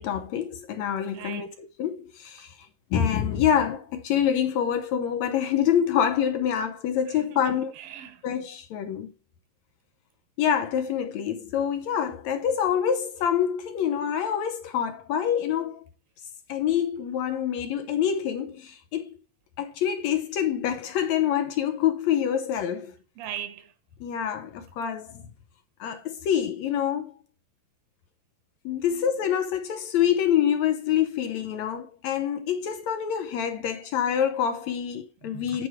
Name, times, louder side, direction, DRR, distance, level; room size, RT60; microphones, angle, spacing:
voice 1, 0.0-2.5 2.9-7.7 8.2-9.1 10.4-15.8 16.5-19.2 19.6-22.9 24.0-25.2 25.8-27.1 28.7-35.7, left 9 dB, 70° left, 1.7 m, -26 dB
voice 2, 1.1-1.5 7.3-8.2 23.2-23.7 35.2-35.6, right 10 dB, 80° right, 2.9 m, -39 dB
9.4 x 4.7 x 4.8 m
omnidirectional pair, 4.1 m